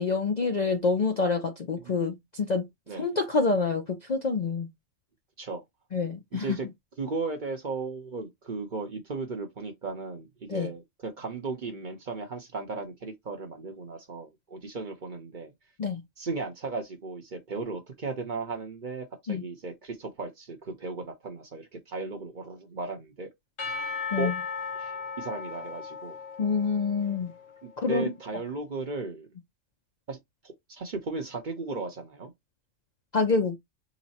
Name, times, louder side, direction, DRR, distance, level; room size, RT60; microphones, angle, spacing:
voice 1, 0.0-2.7 3.0-4.7 5.9-6.6 10.5-10.7 15.8-16.0 19.3-19.4 24.1-24.3 26.4-27.3 27.8-28.1 33.1-33.6, left 4 dB, 50° left, 0.5 m, -27 dB
voice 2, 6.3-6.7 7.0-15.5 16.2-23.3 24.2-24.3 24.8-26.2 27.6-29.3 30.1-30.2 30.4-32.3, right 3 dB, 45° right, 0.9 m, -36 dB
Percussion / Church bell, 23.6-27.6, left 5 dB, 85° left, 1.4 m, -36 dB
4.0 x 2.0 x 4.1 m
omnidirectional pair, 1.3 m